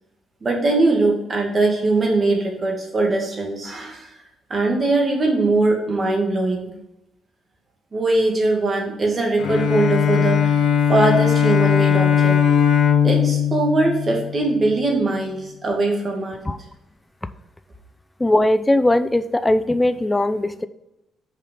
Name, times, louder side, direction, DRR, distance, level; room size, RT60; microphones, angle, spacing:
voice 1, 0.4-4.1 4.5-6.7 7.9-10.6 10.9-12.4 13.0-16.4, right 2 dB, 35° right, 1 dB, 2.3 m, -21 dB
Bowed string instrument, 9.4-14.8, left 8 dB, 70° left, 1.1 m, -19 dB
voice 2, 18.2-20.7, left 1 dB, 15° left, 11 dB, 0.5 m, -19 dB
6.6 x 5.0 x 5.6 m, 0.90 s
cardioid pair, 90°, 0 cm